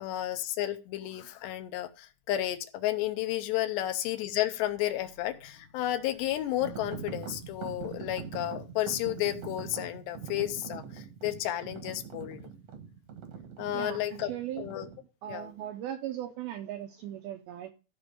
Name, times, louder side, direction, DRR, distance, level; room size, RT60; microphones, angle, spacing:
voice 1, 0.0-12.5 13.6-14.3 14.6-14.9 15.3-15.5, left 14 dB, 80° left, 2.9 m, -32 dB
sound 1, 6.6-15.0, right 7 dB, 65° right, 1.6 m, -43 dB
voice 2, 13.7-14.7 15.2-17.7, right 12 dB, 85° right, 2.2 m, -38 dB
13.5 x 5.3 x 5.0 m
omnidirectional pair, 5.1 m